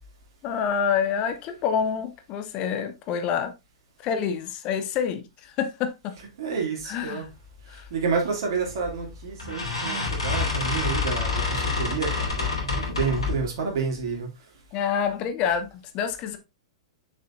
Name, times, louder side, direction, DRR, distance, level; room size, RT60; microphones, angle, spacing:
voice 1, 0.4-3.5 4.0-6.1 6.8-7.3 7.7-7.9 14.7-15.7 15.9-16.4, left 7 dB, 35° left, 0.8 m, -27 dB
voice 2, 6.4-7.3 7.7-14.3, right 5 dB, 50° right, 2.5 m, -29 dB
sound 1, 8.6-8.9 9.4-13.5, left 4 dB, 70° left, 2.5 m, -27 dB
6.8 x 6.2 x 2.6 m
figure-of-eight pair, 100°, 3 cm